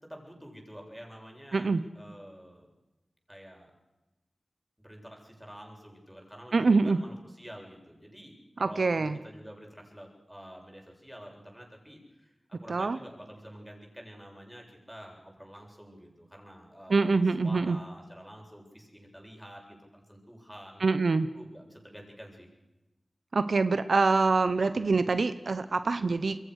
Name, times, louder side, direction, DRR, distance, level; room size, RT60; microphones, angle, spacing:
voice 1, 0.0-2.7 3.3-3.7 4.8-20.8 21.3-22.5, equal, 5° right, 1 dB, 7.8 m, -48 dB
voice 2, 6.5-7.0 8.6-9.2 12.7-13.0 16.9-17.8 20.8-21.3 23.3-26.4, right 4 dB, 75° right, 12 dB, 1.0 m, -25 dB
28.0 x 22.5 x 6.6 m, 1.0 s
cardioid pair, 50°, 0 cm